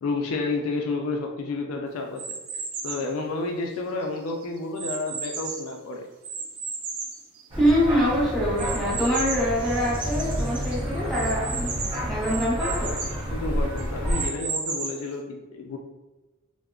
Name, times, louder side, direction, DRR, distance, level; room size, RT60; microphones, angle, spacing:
voice 1, 0.0-2.2 2.8-6.0 13.3-15.8, left 3 dB, 70° left, 3 dB, 0.4 m, -30 dB
sound 1, 2.2-3.1 3.7-5.8 6.2-7.9 8.6-9.5 10.0-10.1 10.3-10.4 11.1-13.2 13.8-15.1, right 4 dB, 80° right, 0.5 m, -34 dB
sound 2, 7.5-14.3, equal, 25° right, 0.6 m, -30 dB
voice 2, 7.6-11.7 12.0-12.9, equal, ahead, -8 dB, 1.0 m, -24 dB
Bowed string instrument, 9.8-13.9, equal, 20° left, 0.6 m, -39 dB
3.5 x 2.1 x 2.3 m, 1.1 s
head